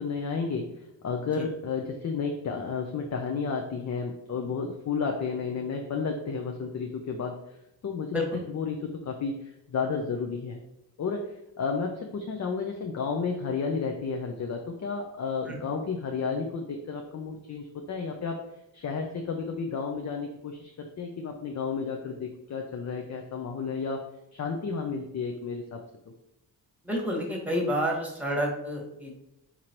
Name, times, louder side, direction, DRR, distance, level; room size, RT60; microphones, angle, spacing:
voice 1, 0.0-7.4 7.8-8.2 8.5-10.6 11.0-18.4 18.7-24.0 24.3-25.8, left 5 dB, 40° left, 3 dB, 0.5 m, -32 dB
voice 2, 26.8-29.1, equal, 5° right, -1 dB, 1.4 m, -29 dB
3.9 x 2.9 x 2.9 m, 0.85 s
supercardioid pair, 55°, 44 cm